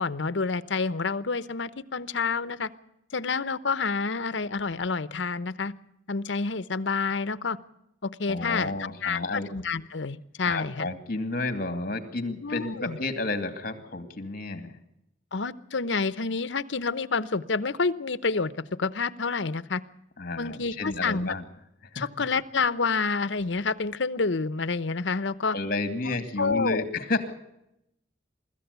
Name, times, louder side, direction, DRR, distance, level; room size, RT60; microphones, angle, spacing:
voice 1, 0.0-2.7 3.1-5.7 6.1-7.6 8.0-10.9 12.4-13.0 15.3-18.5 18.8-19.8 20.4-21.3 22.0-25.6 26.4-26.8, left 4 dB, 75° left, 16 dB, 0.9 m, -28 dB
voice 2, 8.3-9.5 10.4-14.8 20.2-21.4 21.9-22.1 25.5-27.3, left 2 dB, 50° left, 9 dB, 2.4 m, -31 dB
24.0 x 14.0 x 8.2 m, 0.84 s
head